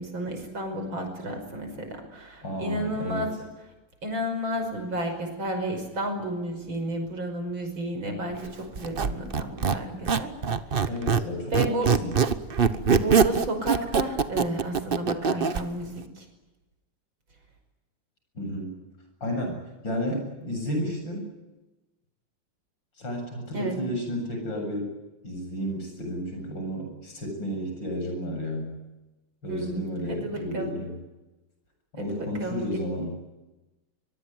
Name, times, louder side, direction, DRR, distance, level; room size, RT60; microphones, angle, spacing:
voice 1, 0.0-3.3 4.0-10.3 10.7-10.9 11.5-11.9 12.9-16.2 23.5-23.8 29.5-30.7 32.0-32.7, right 1 dB, 65° right, 5 dB, 6.1 m, -32 dB
voice 2, 2.4-3.3 10.9-11.7 12.0-12.2 18.3-18.8 19.2-21.3 23.0-24.9 25.2-28.8 29.4-31.0 31.9-33.2, equal, 60° left, 3 dB, 8.3 m, -32 dB
Squeak, 8.8-11.3 11.5-15.6, right 6 dB, 40° right, 0.8 m, -23 dB
23.5 x 22.5 x 9.4 m, 1.1 s
omnidirectional pair, 2.3 m